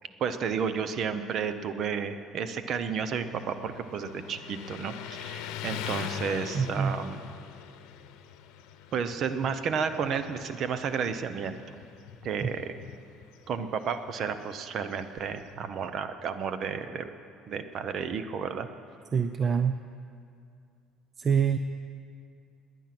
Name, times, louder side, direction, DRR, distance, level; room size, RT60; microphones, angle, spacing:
voice 1, 0.2-7.2 8.9-11.6 12.2-12.7 13.5-17.1 17.5-18.7, right 6 dB, 50° right, 10 dB, 0.9 m, -32 dB
Motorcycle, 3.1-15.8, left 10 dB, 80° left, 0.9 m, -43 dB
voice 2, 6.5-6.9 12.4-12.5 19.1-19.8 21.2-21.6, right 7 dB, 35° right, 9 dB, 0.5 m, -25 dB
20.0 x 9.3 x 6.0 m, 2.5 s
cardioid pair, 130°, 0 cm